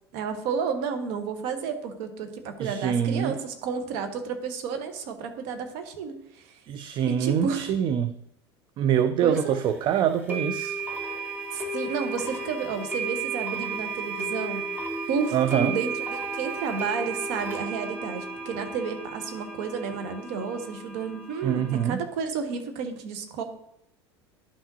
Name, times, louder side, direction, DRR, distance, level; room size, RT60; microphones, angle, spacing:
voice 1, 0.1-6.6 7.1-7.7 9.2-9.6 11.5-14.7 15.1-23.4, right 6 dB, 55° right, 7 dB, 1.1 m, -31 dB
voice 2, 2.6-3.4 6.7-8.2 8.8-10.8 15.3-15.8 21.4-22.0, right 9 dB, 35° right, 12 dB, 0.4 m, -25 dB
sound 1, 9.3-9.4 10.3-21.9, right 3 dB, 15° right, 2.5 m, -34 dB
11.0 x 5.8 x 2.7 m, 0.76 s
figure-of-eight pair, 75°, 14 cm